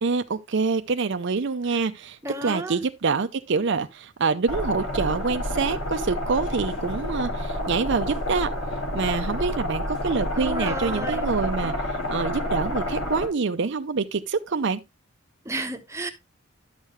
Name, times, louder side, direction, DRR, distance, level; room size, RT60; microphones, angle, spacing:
voice 1, 0.0-8.5 8.9-11.7 12.1-14.8, right 4 dB, 55° right, 0.5 m, -26 dB
voice 2, 2.2-2.8 9.0-9.3 10.4-11.3 15.4-16.1, right 1 dB, 15° right, 1.0 m, -32 dB
sound 1, 4.5-13.3, left 1 dB, 80° left, 5.2 m, -29 dB
11.0 x 6.5 x 3.2 m
head